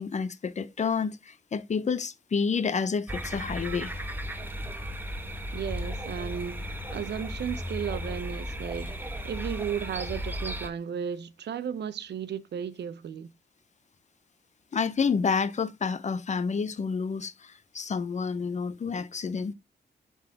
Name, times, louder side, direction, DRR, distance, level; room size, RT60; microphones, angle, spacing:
voice 1, 0.0-3.9 14.7-19.5, left 5 dB, 40° left, 0.7 m, -29 dB
sound 1, 3.1-10.7, equal, 10° right, 1.4 m, -35 dB
voice 2, 5.5-13.3, right 8 dB, 75° right, 0.7 m, -35 dB
7.5 x 4.1 x 3.5 m
cardioid pair, 90°, 18 cm